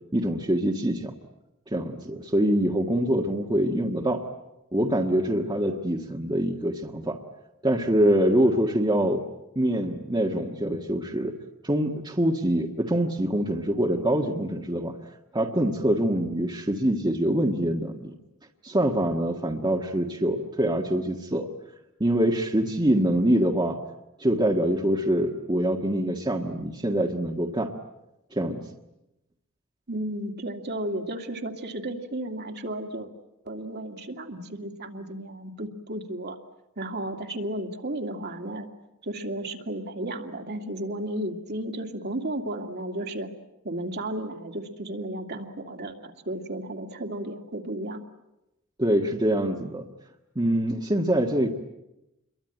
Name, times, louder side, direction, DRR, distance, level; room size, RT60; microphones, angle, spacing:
voice 1, 0.1-1.1 1.7-4.2 4.7-7.2 7.6-9.2 9.5-11.3 11.6-14.9 15.3-18.1 18.6-21.5 22.0-23.8 24.2-27.7 28.3-28.6 48.8-49.9 50.3-51.5, right 1 dB, 20° right, 2 dB, 1.6 m, -24 dB
voice 2, 29.9-33.1 33.5-36.4 36.8-38.7 39.0-43.3 43.6-48.0, right 1 dB, 50° right, 4 dB, 2.3 m, -33 dB
28.0 x 23.0 x 9.1 m, 0.92 s
head